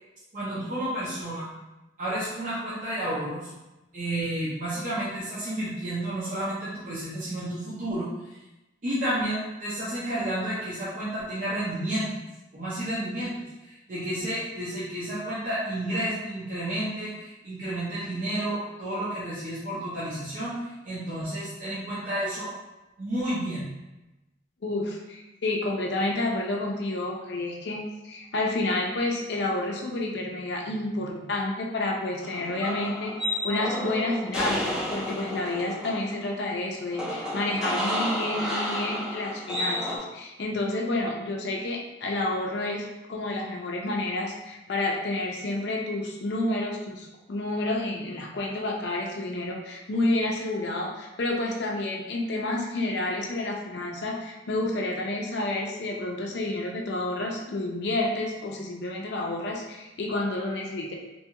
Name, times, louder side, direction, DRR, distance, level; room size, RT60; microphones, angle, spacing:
voice 1, 0.3-1.5 2.0-3.5 3.9-8.1 8.8-12.1 12.5-22.5 23.0-23.7, right 1 dB, 45° right, -10 dB, 0.6 m, -31 dB
voice 2, 24.6-61.0, left 2 dB, 60° left, 0 dB, 0.4 m, -30 dB
sound 1, 32.2-40.0, equal, 5° right, 0.5 m, -31 dB
2.7 x 2.3 x 2.8 m, 1.0 s
head